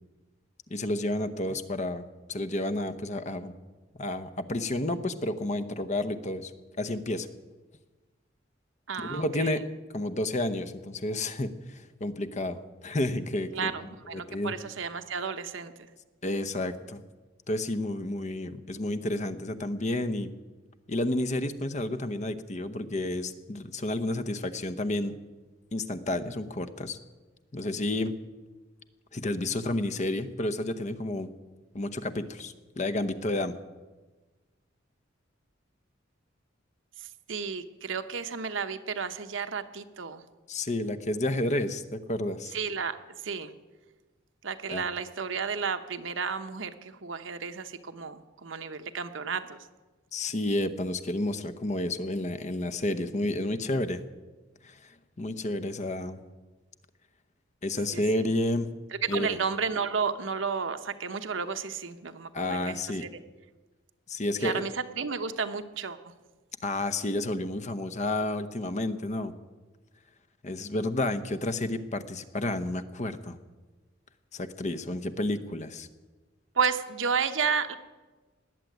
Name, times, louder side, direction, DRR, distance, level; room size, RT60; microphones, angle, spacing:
voice 1, 0.7-3.5 4.0-6.5 6.8-7.3 9.0-9.7 9.9-13.7 14.1-14.5 16.2-17.0 17.5-20.3 20.9-25.2 25.7-27.0 27.5-28.1 29.1-31.3 31.7-33.6 40.5-42.5 44.7-44.9 50.1-54.0 54.6-54.9 55.2-56.2 57.6-58.7 59.1-59.4 62.3-63.0 64.1-64.6 66.6-69.3 70.4-73.4 74.3-75.9, left 1 dB, 35° left, 11 dB, 0.8 m, -31 dB
voice 2, 8.9-9.6 13.5-15.9 37.0-40.2 42.5-43.0 43.2-43.5 44.4-49.6 57.9-58.2 59.0-62.3 62.7-63.1 64.4-66.0 76.5-77.8, right 5 dB, 75° right, 9 dB, 1.0 m, -32 dB
19.5 x 7.5 x 9.2 m, 1.3 s
head